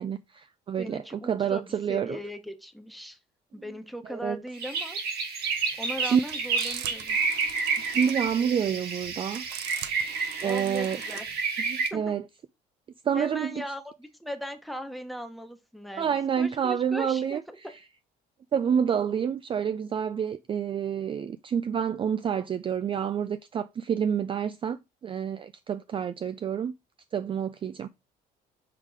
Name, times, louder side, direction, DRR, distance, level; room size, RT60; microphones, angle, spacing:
voice 1, 0.0-2.2 4.0-4.4 6.0-6.2 7.9-9.4 10.4-11.0 11.6-12.2 13.0-13.5 16.0-17.4 18.5-26.7 27.1-27.9, right 8 dB, 30° right, 0.4 m, -28 dB
voice 2, 0.8-3.2 3.5-5.0 5.8-7.2 10.4-11.3 11.9-12.2 13.1-16.1 16.4-17.4, equal, ahead, 1.0 m, -38 dB
sound 1, 4.5-11.9, right 5 dB, 70° right, 2.0 m, -30 dB
sound 2, 5.5-11.4, right 11 dB, 85° right, 0.7 m, -42 dB
5.7 x 3.6 x 4.7 m
cardioid pair, 110°, 17 cm